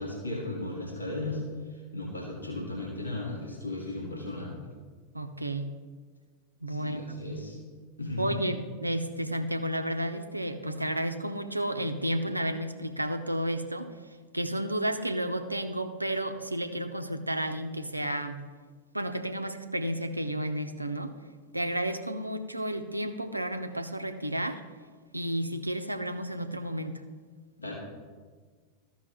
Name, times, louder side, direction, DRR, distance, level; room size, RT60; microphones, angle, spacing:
voice 1, 0.0-4.6 6.7-7.6 8.0-8.5 27.6-27.7, left 2 dB, 80° left, -4 dB, 2.0 m, -36 dB
voice 2, 5.1-5.7 6.6-7.2 8.2-13.9 14.3-18.4 18.9-21.1 21.5-24.6 25.1-27.0, right 1 dB, 85° right, 8 dB, 0.6 m, -32 dB
13.5 x 5.8 x 3.6 m, 1.5 s
figure-of-eight pair, 90°, 0 cm